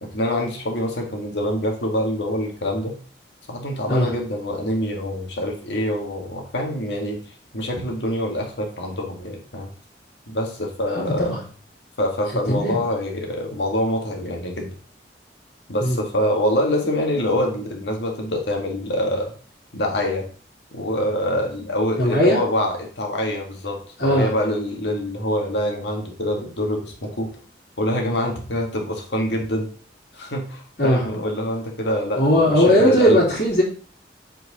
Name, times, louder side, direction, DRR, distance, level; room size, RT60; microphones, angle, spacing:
voice 1, 0.0-3.0 3.5-7.2 7.5-9.7 10.3-11.3 12.0-14.7 15.7-19.3 19.7-20.3 20.7-27.3 27.8-29.7 30.1-33.2, left 1 dB, 80° left, 1 dB, 1.8 m, -25 dB
voice 2, 10.9-11.4 12.5-12.8 15.8-16.0 22.0-22.4 24.0-24.3 30.8-31.0 32.1-33.6, equal, 60° left, -10 dB, 3.4 m, -18 dB
8.0 x 4.6 x 4.2 m, 0.43 s
head